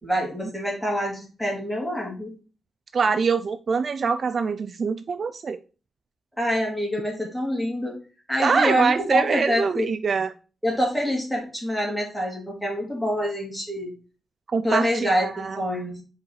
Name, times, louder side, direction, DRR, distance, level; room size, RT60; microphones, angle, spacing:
voice 1, 0.0-2.3 6.4-8.0 8.3-9.9 10.6-13.9 14.6-15.3 15.6-16.0, equal, 5° left, -2 dB, 2.7 m, -26 dB
voice 2, 2.9-5.6 8.4-10.3 14.5-15.6, right 5 dB, 45° right, 11 dB, 0.4 m, -24 dB
4.8 x 4.7 x 4.2 m, 0.34 s
wide cardioid pair, 140°, 0 cm